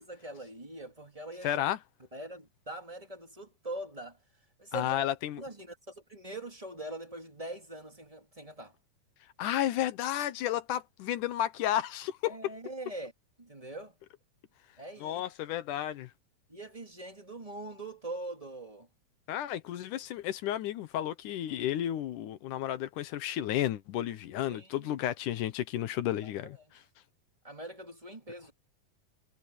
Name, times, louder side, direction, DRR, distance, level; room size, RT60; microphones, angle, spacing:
voice 1, 0.0-1.6 2.1-4.2 4.6-5.0 5.4-8.8 12.3-13.1 13.4-14.0 14.8-15.2 16.5-18.9 24.5-24.9 26.2-26.7 27.4-28.5, right 1 dB, 10° right, 2.7 m, -43 dB
voice 2, 1.4-1.8 4.7-5.4 9.4-12.4 15.0-16.1 19.3-26.6, left 12 dB, 70° left, 2.2 m, -32 dB
omnidirectional pair, 4.1 m